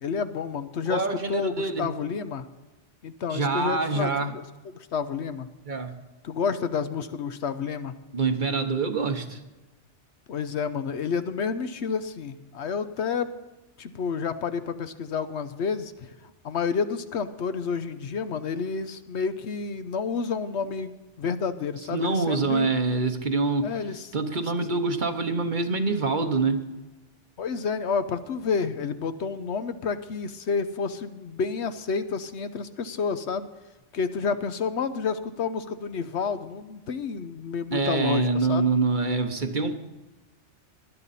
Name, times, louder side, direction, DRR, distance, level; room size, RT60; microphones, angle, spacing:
voice 1, 0.0-1.0 1.3-2.5 3.0-4.4 4.7-5.5 6.2-7.9 10.3-13.3 13.8-16.1 16.4-22.7 23.6-24.1 27.4-33.5 33.9-38.7, left 5 dB, 70° left, 11 dB, 1.0 m, -30 dB
voice 2, 0.9-1.9 3.3-4.3 5.7-5.9 8.1-9.4 21.9-23.7 24.1-26.6 37.7-39.8, right 3 dB, 45° right, 7 dB, 1.1 m, -25 dB
19.0 x 11.5 x 4.1 m, 1.1 s
omnidirectional pair, 1.2 m